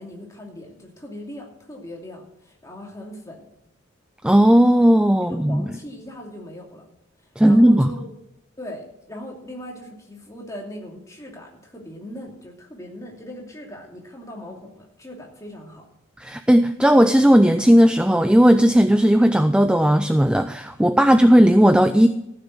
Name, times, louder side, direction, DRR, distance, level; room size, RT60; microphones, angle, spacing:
voice 1, 0.0-3.5 5.2-6.8 7.4-8.1 8.6-15.9 21.0-21.2, left 1 dB, 15° left, -1 dB, 2.6 m, -39 dB
voice 2, 4.2-5.6 7.4-7.9 16.2-22.1, equal, 5° right, 9 dB, 0.4 m, -15 dB
15.0 x 6.8 x 8.0 m, 0.83 s
head